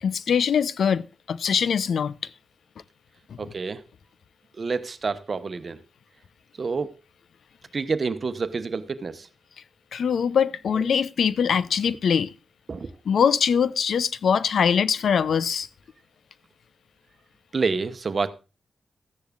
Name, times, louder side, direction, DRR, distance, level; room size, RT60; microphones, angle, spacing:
voice 1, 0.0-2.1 9.9-12.3 13.1-15.7, left 7 dB, 75° left, 0.6 m, -22 dB
voice 2, 3.4-3.8 4.6-5.8 6.6-6.9 7.7-9.3 12.7-12.9 17.5-18.3, right 4 dB, 45° right, 1.0 m, -28 dB
14.5 x 10.5 x 2.4 m
cardioid pair, 80°, 0 cm